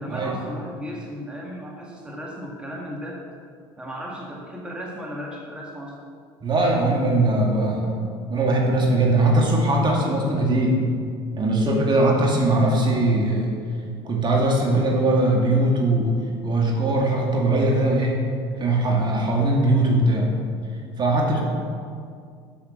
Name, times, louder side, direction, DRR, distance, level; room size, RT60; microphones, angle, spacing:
voice 1, 0.0-3.2 3.8-6.0 21.2-21.4, equal, 10° right, -3 dB, 1.9 m, -35 dB
voice 2, 6.4-7.9 8.3-10.8 11.4-13.5 14.0-16.1 16.4-18.2 18.6-20.3 21.0-21.4, right 2 dB, 35° right, -1 dB, 2.2 m, -20 dB
7.4 x 7.2 x 6.6 m, 2.2 s
hypercardioid pair, 75°, 13 cm